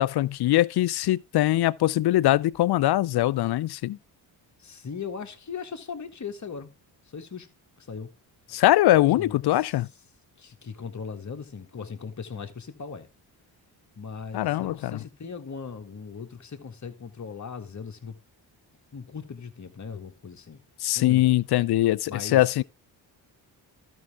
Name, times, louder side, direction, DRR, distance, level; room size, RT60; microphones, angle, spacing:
voice 1, 0.0-4.0 8.5-9.9 14.3-15.0 20.8-22.6, left 15 dB, 55° left, 0.5 m, -22 dB
voice 2, 4.6-6.7 7.1-7.5 7.8-8.1 9.2-9.7 10.4-13.1 13.9-18.2 18.9-20.6 20.9-21.3 22.1-22.6, left 5 dB, 35° left, 1.6 m, -38 dB
12.5 x 5.7 x 3.5 m
supercardioid pair, 60°, 48 cm